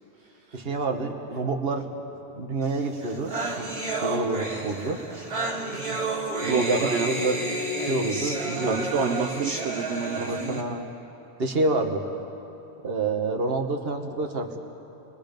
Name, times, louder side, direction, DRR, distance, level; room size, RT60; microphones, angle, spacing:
voice 1, 0.5-1.9 2.3-3.7 4.0-5.0 6.4-7.4 7.8-9.3 10.1-10.9 11.4-12.0 12.8-14.6, right 2 dB, 60° right, 4 dB, 1.6 m, -28 dB
sound 1, 2.7-2.8 3.0-10.6, right 2 dB, 40° right, 2.8 m, -31 dB
voice 2, 5.7-6.0 6.5-7.1 8.6-10.6, right 6 dB, 75° right, 5 dB, 1.0 m, -29 dB
28.0 x 22.0 x 5.3 m, 3.0 s
omnidirectional pair, 1.1 m